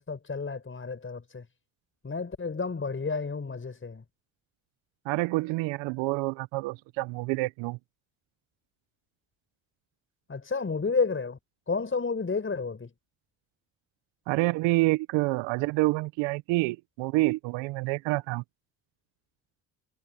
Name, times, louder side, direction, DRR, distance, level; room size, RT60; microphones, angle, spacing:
voice 1, 0.0-1.5 2.0-4.0 10.3-11.4 11.7-12.9, left 4 dB, 25° left, 5.8 m, -31 dB
voice 2, 5.0-7.8 14.3-18.4, right 22 dB, 70° right, 1.1 m, -27 dB
hypercardioid pair, 60°, 46 cm